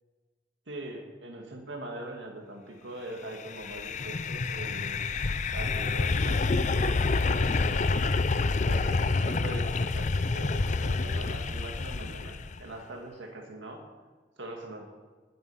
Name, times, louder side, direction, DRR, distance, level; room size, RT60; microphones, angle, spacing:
voice 1, 0.7-5.0 5.5-8.0 8.7-13.8 14.4-14.8, right 1 dB, 80° right, 1 dB, 2.0 m, -42 dB
sound 1, 3.4-12.6, left 3 dB, 40° left, 0.5 m, -28 dB
20.5 x 7.8 x 5.6 m, 1.4 s
head